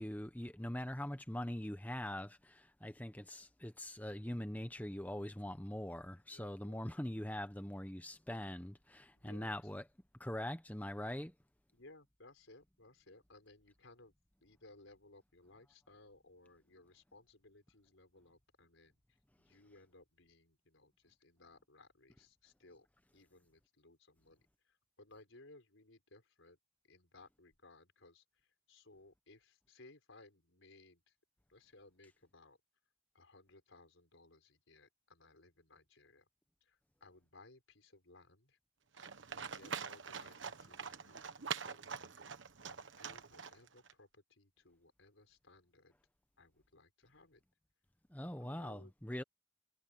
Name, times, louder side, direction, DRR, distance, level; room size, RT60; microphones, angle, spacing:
voice 1, 0.0-9.8 10.2-11.3 48.1-49.2, left 1 dB, 10° left, 0.9 m, -42 dB
voice 2, 6.3-6.9 9.1-9.7 11.7-14.1 14.4-22.9 23.1-26.6 26.9-31.2 31.5-32.6 33.1-36.3 36.6-38.6 39.5-46.0 46.4-47.4 48.4-48.9, left 2 dB, 85° left, 5.1 m, -62 dB
Livestock farm animals working animals, 39.0-43.9, right 6 dB, 75° right, 1.3 m, -45 dB
head